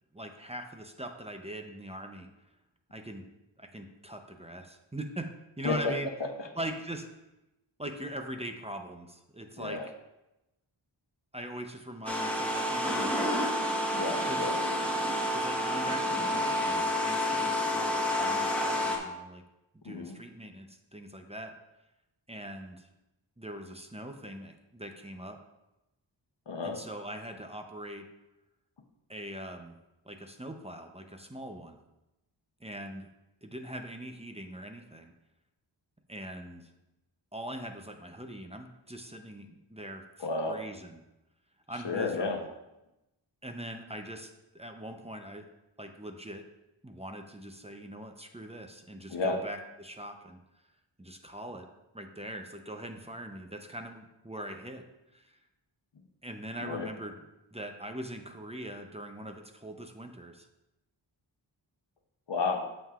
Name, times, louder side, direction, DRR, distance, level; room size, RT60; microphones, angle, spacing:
voice 1, 0.1-2.3 2.9-3.2 3.6-5.3 5.6-6.1 6.6-7.1 7.8-9.8 11.3-13.5 14.3-14.4 15.3-19.4 19.8-21.5 22.3-22.9 23.4-25.4 26.6-28.0 29.1-29.8 30.0-31.8 32.6-33.1 33.4-35.1 36.1-36.7 37.3-41.0 41.7-42.5 43.4-45.5 45.8-46.5 46.8-50.4 51.0-51.7 51.9-54.9 55.1-55.3 56.2-57.1 57.5-60.5, right 1 dB, 15° right, 4 dB, 0.7 m, -41 dB
voice 2, 9.6-9.9 13.9-14.7 19.8-20.2 26.5-26.8 40.2-40.6 41.8-42.4 49.1-49.4 56.6-56.9 62.3-62.7, left 4 dB, 65° left, 4 dB, 1.0 m, -32 dB
sound 1, 12.1-19.0, left 1 dB, 5° left, 1.3 m, -29 dB
8.5 x 7.5 x 2.4 m, 0.95 s
wide cardioid pair, 70°, 47 cm